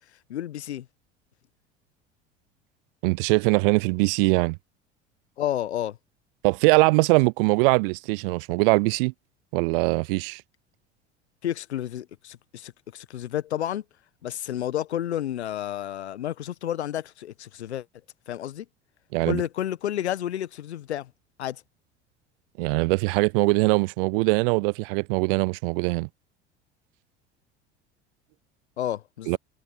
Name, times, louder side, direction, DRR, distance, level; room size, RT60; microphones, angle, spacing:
voice 1, 0.3-0.9 5.4-6.0 11.4-13.8 14.2-17.8 18.3-18.7 19.3-21.1 21.4-21.6 28.8-29.4, left 11 dB, 75° left, 1.4 m, -31 dB
voice 2, 3.0-4.6 6.4-9.1 9.5-10.4 19.1-19.4 22.6-26.1 29.3-29.4, right 28 dB, 55° right, 0.6 m, -22 dB
figure-of-eight pair, 70°, 34 cm